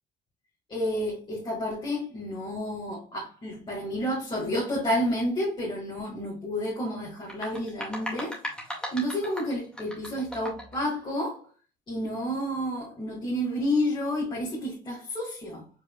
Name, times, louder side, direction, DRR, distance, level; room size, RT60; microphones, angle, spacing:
voice 1, 0.7-11.5 11.9-15.7, equal, 25° left, 2.0 m, -30 dB
sound 1, 7.2-10.8, equal, 5° left, 2.0 m, -38 dB
5.2 x 4.2 x 2.3 m
cardioid pair, 110°, 17 cm